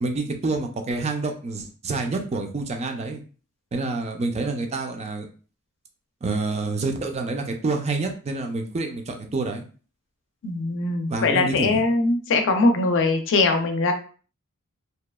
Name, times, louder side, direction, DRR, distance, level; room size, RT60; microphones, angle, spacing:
voice 1, 0.0-3.2 3.7-5.3 6.2-9.6 11.1-11.8, right 3 dB, 30° right, 4 dB, 0.4 m, -27 dB
voice 2, 10.4-13.9, left 3 dB, 60° left, 6 dB, 0.5 m, -21 dB
2.8 x 2.3 x 2.2 m, 0.39 s
head